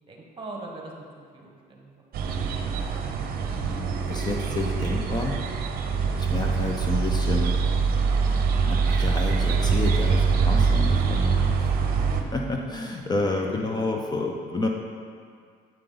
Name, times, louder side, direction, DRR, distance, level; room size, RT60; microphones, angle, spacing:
voice 1, 0.1-1.0 1.3-2.3, right 2 dB, 30° right, 0 dB, 1.2 m, -42 dB
sound 1, 2.1-12.2, right 5 dB, 60° right, 0.7 m, -24 dB
voice 2, 3.5-5.4 6.1-7.5 8.5-14.7, left 2 dB, 25° left, 1 dB, 0.6 m, -30 dB
7.6 x 4.9 x 3.9 m, 2.1 s
cardioid pair, 110°, 17 cm